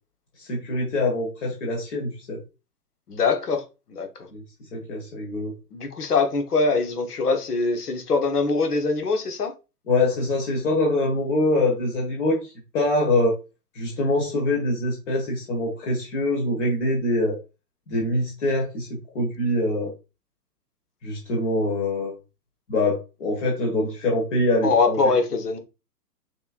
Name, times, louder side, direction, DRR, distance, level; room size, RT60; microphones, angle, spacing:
voice 1, 0.4-2.4 4.3-4.4 4.7-5.5 9.9-13.4 13.7-17.4 17.9-19.9 21.0-22.1 22.7-25.0, left 1 dB, 45° left, 1.6 m, -24 dB
voice 2, 3.1-4.1 5.7-9.5 24.6-25.6, left 4 dB, 70° left, 1.2 m, -23 dB
6.4 x 3.1 x 2.4 m
figure-of-eight pair, 115°, 48 cm